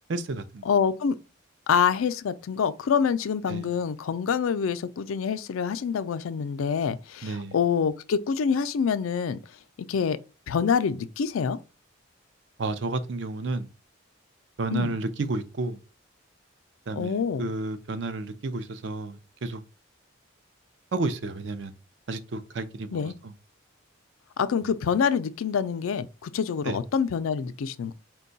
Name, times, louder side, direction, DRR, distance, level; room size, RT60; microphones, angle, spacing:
voice 1, 0.1-0.7 3.5-3.6 7.2-7.5 12.6-13.7 14.6-15.8 16.9-19.6 20.9-21.7 22.1-23.1 26.7-26.8, right 3 dB, 60° right, 0.5 m, -31 dB
voice 2, 0.7-1.2 1.7-9.4 9.9-10.2 10.5-11.6 14.7-14.9 16.9-17.5 22.9-23.1 24.4-27.9, left 6 dB, 90° left, 0.4 m, -26 dB
4.5 x 2.3 x 3.9 m
head